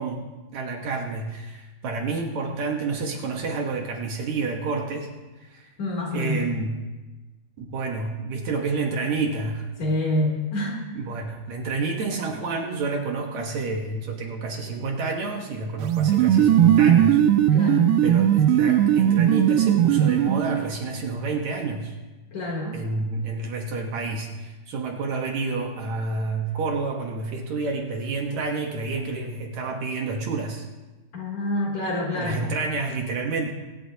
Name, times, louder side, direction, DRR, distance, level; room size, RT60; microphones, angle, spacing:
voice 1, 0.0-5.1 5.4-5.7 6.1-6.8 7.6-9.7 11.0-17.2 18.0-22.0 22.7-30.7 32.1-33.5, right 3 dB, 65° right, 2 dB, 2.3 m, -29 dB
voice 2, 5.8-6.4 9.8-10.9 17.5-17.9 22.3-22.9 31.1-32.4, left 1 dB, 55° left, -2 dB, 4.2 m, -27 dB
sound 1, 15.8-20.7, right 10 dB, 85° right, 2.2 m, -18 dB
23.5 x 11.5 x 2.8 m, 1.2 s
omnidirectional pair, 3.8 m